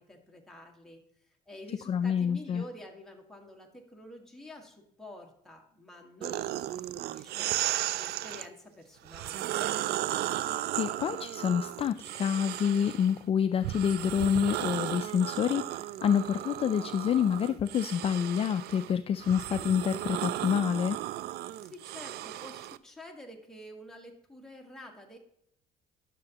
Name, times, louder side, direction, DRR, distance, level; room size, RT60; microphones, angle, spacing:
voice 1, 0.0-7.5 8.0-9.5 21.6-25.2, left 1 dB, 5° left, 1 dB, 1.7 m, -49 dB
voice 2, 1.9-2.6 10.7-21.0, left 8 dB, 35° left, 11 dB, 0.3 m, -28 dB
sound 1, 6.2-8.5 9.1-13.1 13.6-22.8, right 13 dB, 70° right, 0.4 m, -35 dB
11.0 x 6.7 x 2.9 m, 0.73 s
cardioid pair, 110°, 17 cm